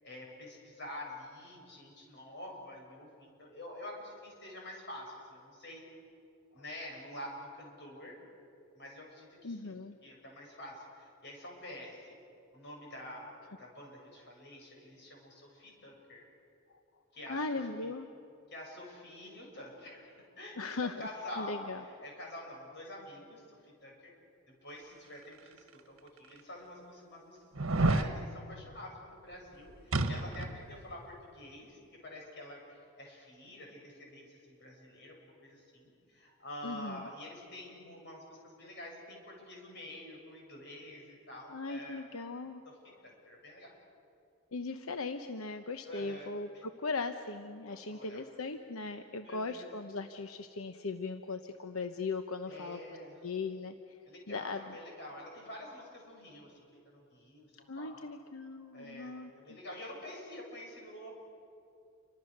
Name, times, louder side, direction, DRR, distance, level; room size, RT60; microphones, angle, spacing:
voice 1, 0.0-5.8 6.5-8.2 8.7-12.2 12.5-16.3 17.1-17.4 17.8-17.9 18.5-24.1 24.6-42.2 42.6-42.8 43.0-43.7 45.9-46.6 47.7-48.2 49.2-49.7 52.5-53.2 54.1-56.6 56.9-58.1 58.7-61.1, left 1 dB, 55° left, -1 dB, 7.1 m, -47 dB
voice 2, 9.4-10.0 16.7-16.8 17.3-18.1 20.6-21.1 21.4-21.8 36.6-37.1 41.5-42.6 44.5-52.8 53.2-54.0 54.3-54.8 57.7-59.6, left 3 dB, 90° left, 7 dB, 0.9 m, -38 dB
sound 1, 25.6-25.7 26.4-26.5 27.5-28.1 29.9-30.6 30.9-31.0, right 2 dB, 75° right, 1.5 m, -29 dB
29.0 x 25.0 x 6.7 m, 2.5 s
head